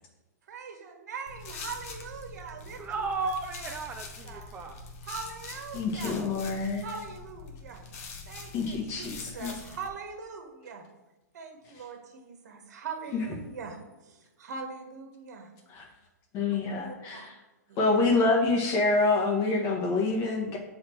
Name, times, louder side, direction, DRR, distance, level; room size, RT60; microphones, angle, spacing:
voice 1, 0.5-3.1 3.6-3.7 4.2-4.4 5.0-6.2 6.8-7.8 8.3-10.8 11.3-13.8 14.0-15.5 16.5-17.3 17.7-17.8, right 5 dB, 65° right, 4 dB, 1.5 m, -42 dB
sound 1, 1.3-9.9, left 4 dB, 50° left, 1.3 m, -44 dB
voice 2, 2.8-4.8, right 3 dB, 15° right, 4 dB, 0.6 m, -34 dB
voice 3, 5.7-6.8 8.5-9.5 13.1-13.2 15.8-15.9 16.3-17.3 17.8-20.6, left 3 dB, 35° left, 0 dB, 1.6 m, -26 dB
7.3 x 4.3 x 4.6 m, 1.1 s
hypercardioid pair, 130°, 10 cm